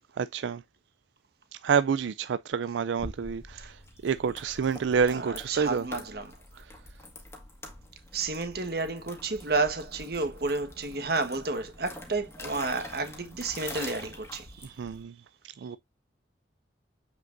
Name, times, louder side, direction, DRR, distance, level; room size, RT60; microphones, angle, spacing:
voice 1, 0.2-0.6 1.6-5.9 6.5-6.7 14.8-15.2 15.6-15.8, right 6 dB, 80° right, 0.4 m, -28 dB
sound 1, 3.0-15.0, left 1 dB, 15° left, 1.9 m, -45 dB
voice 2, 4.9-6.3 8.1-14.7, right 3 dB, 55° right, 1.4 m, -31 dB
7.8 x 5.9 x 2.6 m
head